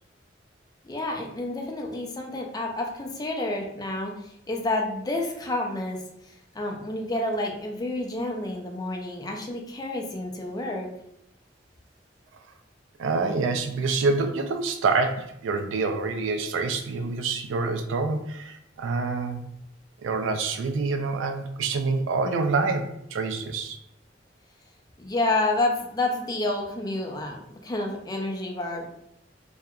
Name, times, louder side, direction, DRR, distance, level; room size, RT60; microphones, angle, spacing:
voice 1, 0.8-10.9 25.0-29.0, left 2 dB, 20° left, 1 dB, 0.4 m, -29 dB
voice 2, 13.0-19.4 20.0-23.8, right 4 dB, 90° right, 6 dB, 0.3 m, -26 dB
2.8 x 2.2 x 2.3 m, 0.77 s
head